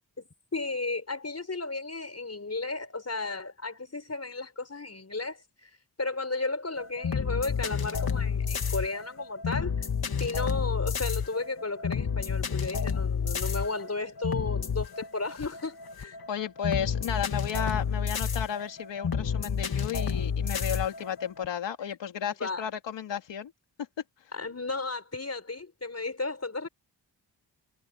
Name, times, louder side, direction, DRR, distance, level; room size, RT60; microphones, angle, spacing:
voice 1, 0.2-5.7 6.0-9.9 10.2-16.2 22.2-22.7 24.3-26.7, left 3 dB, 35° left, 6.0 m, -34 dB
sound 1, 6.8-21.5, left 6 dB, 55° left, 2.5 m, -30 dB
voice 2, 16.3-23.5, left 8 dB, 85° left, 3.4 m, -33 dB
cardioid pair, 45°, 42 cm